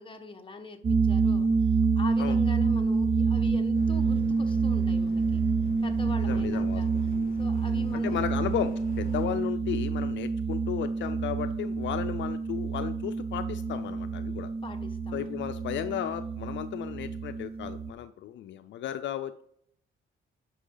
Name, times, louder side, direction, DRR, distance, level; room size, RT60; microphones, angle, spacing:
voice 1, 0.0-5.4 5.8-6.9 7.4-8.2 14.6-15.4, left 4 dB, 25° left, 4 dB, 1.3 m, -43 dB
sound 1, 0.8-17.9, right 4 dB, 30° right, 0.6 m, -27 dB
sound 2, 3.7-9.2, left 4 dB, 45° left, 2.7 m, -48 dB
voice 2, 6.3-7.0 8.0-14.5 15.1-19.4, left 11 dB, 65° left, 10 dB, 0.5 m, -34 dB
9.9 x 5.6 x 3.9 m, 0.70 s
cardioid pair, 90°, 20 cm